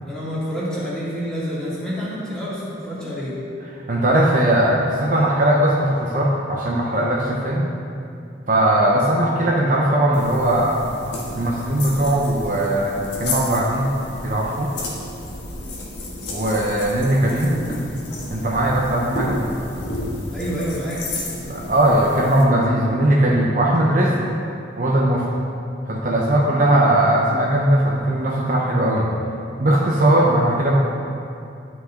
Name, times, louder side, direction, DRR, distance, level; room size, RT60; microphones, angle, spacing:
voice 1, 0.0-3.4 17.5-17.9 20.3-21.1 26.5-26.8 30.1-30.4, equal, 5° left, -9 dB, 2.2 m, -28 dB
voice 2, 3.9-7.7 8.5-10.8 11.3-13.9 14.2-14.7 16.3-17.8 18.3-19.4 21.5-24.2 24.8-25.3 25.9-29.1 29.6-30.8, right 1 dB, 45° right, -3 dB, 0.8 m, -19 dB
sound 1, 10.1-22.4, left 2 dB, 65° left, 1.5 m, -32 dB
12.0 x 5.7 x 3.8 m, 2.6 s
head